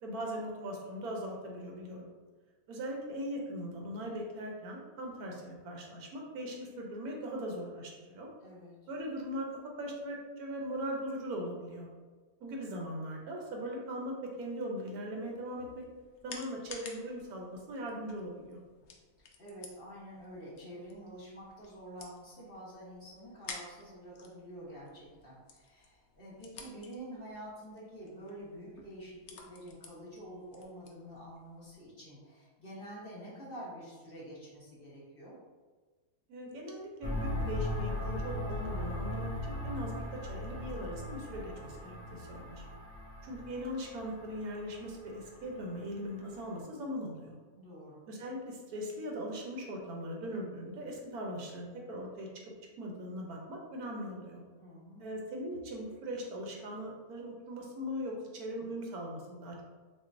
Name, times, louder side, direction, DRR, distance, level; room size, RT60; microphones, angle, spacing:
voice 1, 0.0-2.1 2.7-8.3 8.9-9.5 9.8-11.9 12.4-15.8 16.2-18.6 36.3-42.6 43.2-47.4 48.1-52.3 52.8-54.4 55.0-59.6, equal, 80° right, 0 dB, 1.2 m, -40 dB
voice 2, 8.4-8.8 19.4-35.4 47.5-48.0 54.6-55.0, right 1 dB, 40° left, -7 dB, 1.2 m, -48 dB
sound 1, 15.5-31.9, left 4 dB, 65° left, 0.7 m, -53 dB
sound 2, 37.0-46.5, left 1 dB, 25° left, 1.6 m, -39 dB
5.9 x 2.2 x 2.5 m, 1.4 s
omnidirectional pair, 1.6 m